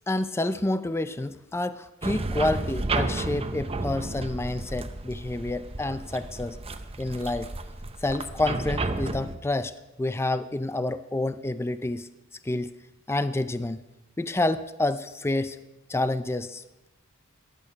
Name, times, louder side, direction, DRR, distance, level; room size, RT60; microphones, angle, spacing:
voice 1, 0.1-6.6 7.0-7.5 8.0-9.7 10.0-12.1 12.4-12.7 13.1-13.8 14.2-15.6 15.9-16.9, left 2 dB, 10° left, 12 dB, 0.4 m, -28 dB
sound 1, 2.0-9.4, right 2 dB, 30° right, 0.8 m, -32 dB
15.0 x 10.5 x 5.7 m, 1.0 s
head